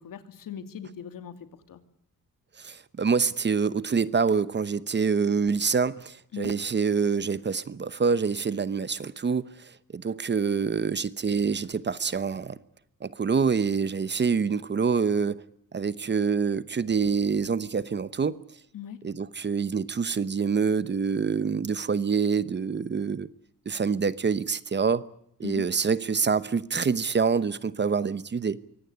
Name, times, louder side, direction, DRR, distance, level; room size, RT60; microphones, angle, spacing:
voice 1, 0.0-1.8 6.3-6.5 18.7-19.0 25.4-25.7, left 9 dB, 75° left, 2.7 m, -39 dB
voice 2, 2.6-12.6 13.0-15.4 15.7-18.4 19.0-23.3 23.7-25.0 25.4-28.6, right 5 dB, 30° right, 0.9 m, -26 dB
24.0 x 17.5 x 9.9 m
cardioid pair, 125°, 34 cm